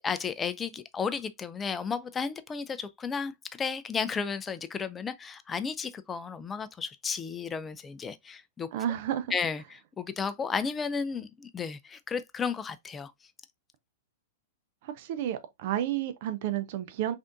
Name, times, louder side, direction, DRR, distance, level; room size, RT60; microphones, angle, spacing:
voice 1, 0.0-8.7 9.3-13.1, left 5 dB, 20° left, 0.3 m, -33 dB
voice 2, 8.7-9.3 14.8-17.1, right 11 dB, 55° right, 0.4 m, -31 dB
3.4 x 2.5 x 2.5 m
hypercardioid pair, 120°, 0 cm